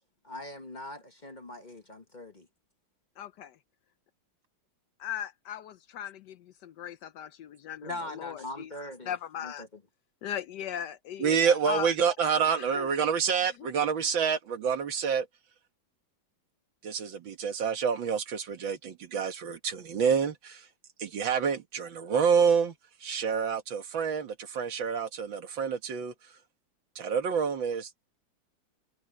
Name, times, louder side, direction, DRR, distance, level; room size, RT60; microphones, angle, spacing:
voice 1, 0.2-2.5 7.8-9.1 9.4-9.7, left 1 dB, 25° left, 1.3 m, -41 dB
voice 2, 3.2-3.5 5.0-8.7 9.1-9.6 10.2-11.9 12.5-12.9 13.6-13.7, left 10 dB, 70° left, 1.1 m, -38 dB
voice 3, 11.2-15.3 16.8-20.7 21.0-22.7 23.0-26.1 27.0-28.1, right 6 dB, 75° right, 2.3 m, -28 dB
omnidirectional pair, 2.1 m